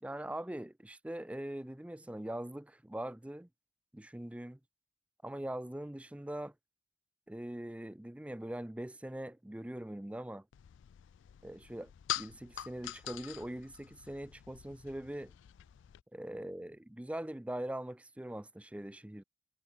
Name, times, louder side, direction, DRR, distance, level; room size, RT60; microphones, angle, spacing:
voice 1, 0.0-3.5 3.9-4.6 5.2-6.5 7.3-10.4 11.4-11.9 12.2-15.3 16.1-19.2, right 1 dB, 5° right, 0.4 m, -42 dB
sound 1, 10.5-16.0, left 13 dB, 70° left, 0.3 m, -45 dB
head